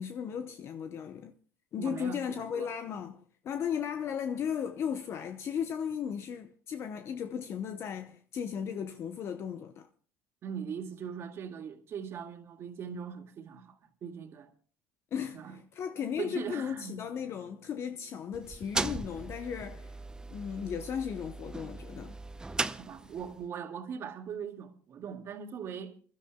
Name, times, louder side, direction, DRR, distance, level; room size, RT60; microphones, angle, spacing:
voice 1, 0.0-1.3 1.7-9.9 15.1-19.9 20.3-22.1, left 8 dB, 50° left, 0.8 m, -36 dB
voice 2, 1.8-2.7 10.4-14.5 15.3-15.6 16.2-17.0 22.8-25.9, right 7 dB, 50° right, 2.0 m, -40 dB
sound 1, 18.3-23.4, right 2 dB, 15° right, 0.6 m, -38 dB
29.0 x 12.5 x 2.3 m
supercardioid pair, 95°, 6 cm